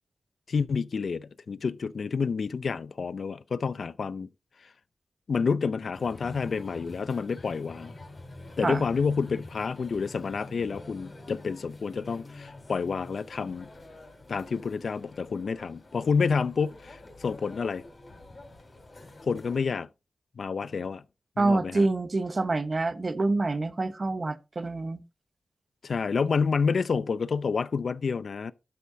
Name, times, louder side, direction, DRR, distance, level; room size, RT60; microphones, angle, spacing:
voice 1, 0.5-4.3 5.3-7.9 8.6-13.7 14.3-17.8 19.2-19.9 20.4-21.0 21.4-21.9 25.8-28.5, left 5 dB, 75° left, 0.5 m, -29 dB
sound 1, 5.9-19.7, left 2 dB, 50° left, 4.4 m, -47 dB
voice 2, 21.4-25.0, right 3 dB, 45° right, 1.0 m, -27 dB
12.0 x 8.4 x 2.7 m
wide cardioid pair, 85°, 0 cm